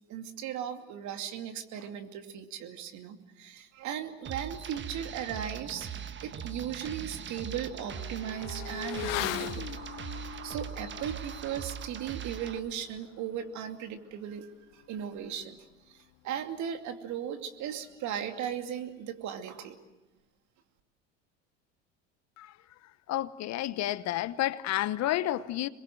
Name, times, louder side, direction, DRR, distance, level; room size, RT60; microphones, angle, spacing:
voice 1, 0.1-5.9 6.2-9.7 10.4-15.6 15.9-19.8, right 9 dB, 50° right, 2.6 m, -37 dB
sound 1, 4.2-12.6, right 8 dB, 30° right, 1.5 m, -41 dB
Motorcycle / Accelerating revving vroom, 6.0-6.1 6.5-16.5 16.8-16.9, left 16 dB, 70° left, 0.8 m, -42 dB
voice 2, 23.1-25.7, left 14 dB, 45° left, 1.0 m, -30 dB
27.0 x 22.5 x 7.8 m
hypercardioid pair, 85°, 37 cm